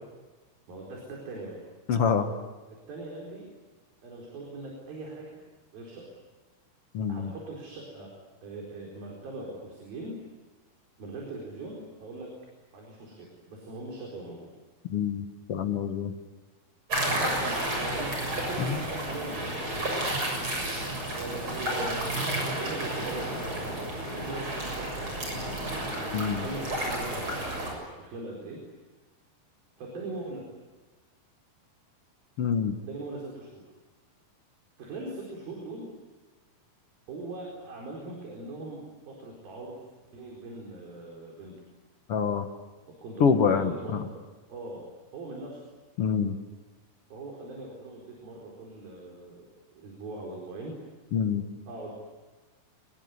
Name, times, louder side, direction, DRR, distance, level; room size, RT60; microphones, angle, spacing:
voice 1, 0.7-1.6 2.9-3.5 4.0-5.3 5.7-6.1 7.1-8.1 8.4-10.1 11.0-12.3 12.7-14.5 17.2-19.9 21.1-25.8 26.4-28.6 29.8-30.4 32.8-33.6 34.8-35.9 37.1-39.7 40.1-41.5 43.0-44.1 44.5-44.8 45.1-45.6 47.1-49.5 49.7-50.8 51.7-51.9, right 2 dB, 65° right, -1 dB, 6.2 m, -41 dB
voice 2, 1.9-2.3 6.9-7.3 14.9-16.1 18.6-18.8 26.1-26.4 32.4-32.7 42.1-42.5 43.2-44.0 46.0-46.4 51.1-51.4, left 6 dB, 70° left, 6 dB, 1.4 m, -26 dB
sound 1, 16.9-27.7, right 1 dB, 30° right, 7.6 m, -31 dB
24.5 x 22.0 x 9.6 m, 1.3 s
omnidirectional pair, 4.5 m